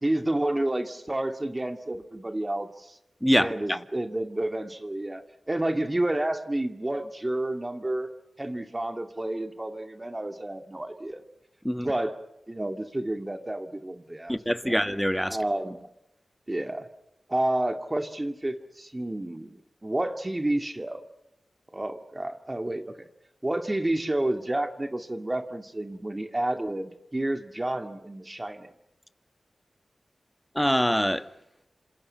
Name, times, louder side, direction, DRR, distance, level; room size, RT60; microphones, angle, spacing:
voice 1, 0.0-2.9 3.4-8.1 8.4-11.2 11.8-12.2 12.5-14.4 14.6-14.8 15.3-15.9 16.5-16.9 17.3-21.0 21.7-23.0 23.4-28.7, right 1 dB, 25° right, 2.2 m, -30 dB
voice 2, 3.2-3.8 11.6-11.9 14.3-15.4 30.5-31.2, equal, 5° left, 1.6 m, -24 dB
27.5 x 27.0 x 5.8 m
cardioid pair, 60°, 0 cm